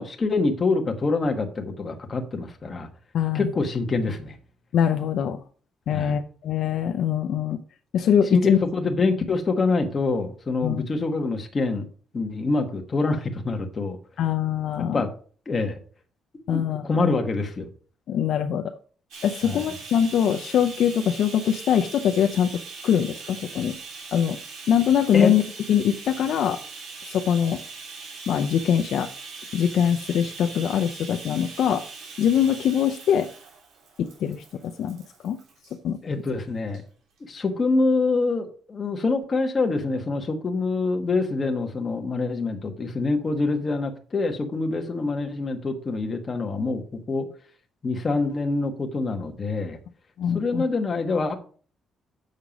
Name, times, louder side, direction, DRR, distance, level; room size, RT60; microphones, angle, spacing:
voice 1, 0.0-2.9 3.3-4.4 5.9-6.2 8.3-11.9 12.1-14.0 14.9-15.1 15.5-15.8 16.5-17.7 19.4-19.7 25.1-25.3 36.0-36.8 37.2-46.8 47.1-47.3 47.8-49.8 50.3-51.3, left 3 dB, 25° left, 4 dB, 1.2 m, -25 dB
voice 2, 3.1-3.5 4.7-5.4 5.9-7.6 7.9-8.6 10.6-10.9 14.2-15.0 16.5-17.1 18.1-18.8 19.2-22.5 22.8-23.8 24.1-24.4 24.7-25.4 25.7-26.6 27.1-27.6 28.3-29.1 29.5-31.9 32.2-33.3 34.0-35.4 35.8-36.0 50.2-50.6, left 9 dB, 60° left, 5 dB, 0.6 m, -23 dB
Bathtub (filling or washing), 19.1-35.8 36.7-36.8 37.2-37.3, right 4 dB, 85° right, 3.1 m, -41 dB
7.2 x 6.5 x 5.1 m, 0.43 s
cardioid pair, 165°, 0 cm